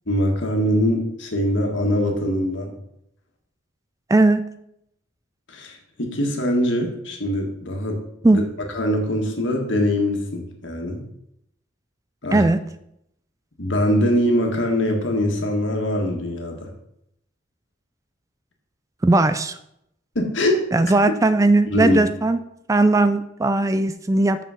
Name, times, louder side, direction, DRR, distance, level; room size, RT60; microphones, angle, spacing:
voice 1, 0.1-2.7 5.5-8.0 8.3-8.4 8.7-11.0 12.2-12.4 13.6-16.7 20.1-20.6 21.7-22.0, left 1 dB, 70° left, 2 dB, 1.7 m, -22 dB
voice 2, 4.1-4.4 8.2-8.4 12.3-12.6 19.0-19.6 20.7-22.4 22.7-24.4, right 2 dB, 15° right, 11 dB, 0.3 m, -18 dB
6.5 x 6.2 x 5.7 m, 0.77 s
head